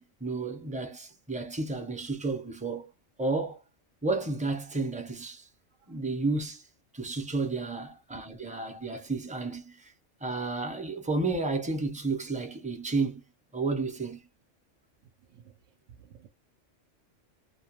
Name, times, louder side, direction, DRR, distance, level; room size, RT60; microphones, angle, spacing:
voice 1, 0.0-2.9 3.2-3.6 4.0-5.5 5.9-6.7 6.9-9.9 10.2-13.2 13.5-14.2, right 3 dB, 10° right, 0.3 m, -32 dB
voice 2, 15.0-15.6 15.9-16.3, right 8 dB, 85° right, 0.9 m, -55 dB
2.3 x 2.2 x 2.9 m
omnidirectional pair, 1.3 m